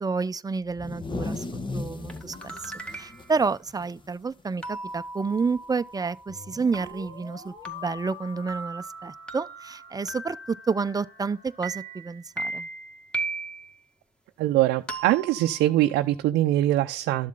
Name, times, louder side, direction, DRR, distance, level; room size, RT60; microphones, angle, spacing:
voice 1, 0.0-12.7, right 4 dB, 20° right, 0.7 m, -30 dB
sound 1, 0.7-4.4 4.7-4.9 5.3-5.7 6.8-6.9 8.0-8.1, left 3 dB, 30° left, 1.4 m, -36 dB
sound 2, 2.1-3.4 4.6-11.3 11.6-13.8 14.9-16.2, right 2 dB, 5° left, 2.1 m, -38 dB
sound 3, 6.3-12.0, left 2 dB, 55° left, 2.4 m, -50 dB
voice 2, 14.4-17.3, right 14 dB, 75° right, 0.6 m, -23 dB
12.5 x 7.3 x 3.9 m
hypercardioid pair, 55°, 17 cm